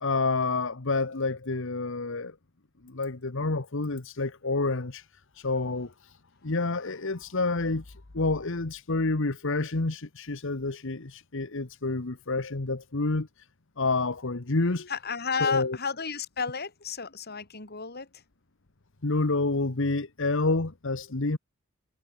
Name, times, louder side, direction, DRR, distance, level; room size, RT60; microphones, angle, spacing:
voice 1, 0.0-2.3 2.8-5.1 5.3-6.2 6.4-13.5 13.8-14.9 15.4-15.8 19.0-21.4, left 3 dB, 65° left, 1.3 m, -28 dB
voice 2, 14.9-18.1, left 5 dB, 50° left, 3.9 m, -32 dB
head